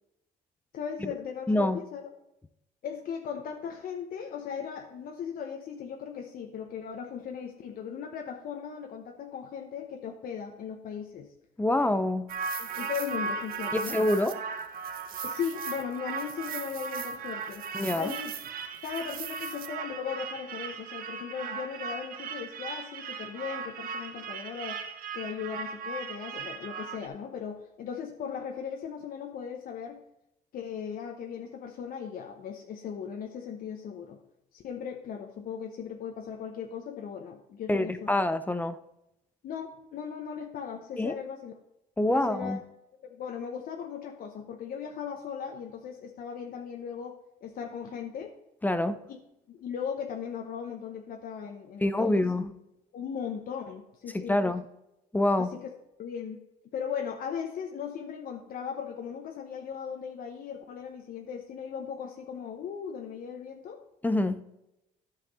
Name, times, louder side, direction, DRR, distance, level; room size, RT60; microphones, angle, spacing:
voice 1, 0.7-2.1 2.8-11.3 12.6-14.0 15.2-18.3 18.8-24.8 25.1-30.0 30.5-34.2 34.5-38.1 39.4-41.5 42.1-42.6 43.1-47.1 47.4-48.3 49.1-49.2 49.5-52.3 52.9-54.4 55.4-55.7 56.0-56.4 56.7-63.8, left 7 dB, 60° left, 0.9 m, -38 dB
voice 2, 1.5-1.8 11.6-12.4 13.7-14.4 17.7-18.1 37.7-38.8 41.0-41.2 42.0-42.6 48.6-49.0 51.8-52.5 54.1-54.6 55.1-55.6 64.0-64.4, left 1 dB, 10° left, 0.5 m, -26 dB
sound 1, 12.3-27.1, right 5 dB, 60° right, 0.9 m, -37 dB
11.0 x 5.8 x 4.0 m
cardioid pair, 110°, 17 cm